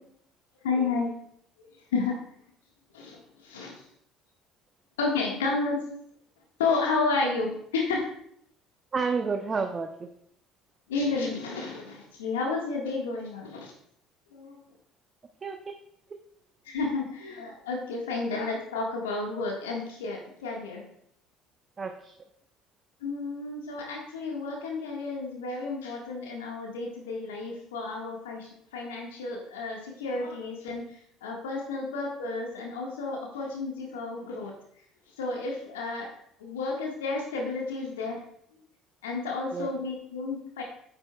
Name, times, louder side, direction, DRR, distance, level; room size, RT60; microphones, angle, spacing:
voice 1, 0.6-1.1 1.6-2.2 2.9-3.8 5.0-5.8 6.6-8.1 10.9-13.7 14.3-14.6 16.6-20.8 23.0-34.5 35.2-36.1 36.4-38.2 39.0-40.6, left 3 dB, 80° left, 0 dB, 1.6 m, -31 dB
voice 2, 8.9-10.1 15.4-15.7 21.8-22.1 39.5-39.7, right 5 dB, 35° right, 6 dB, 0.7 m, -30 dB
9.6 x 8.6 x 2.3 m, 0.69 s
hypercardioid pair, 60°, 0 cm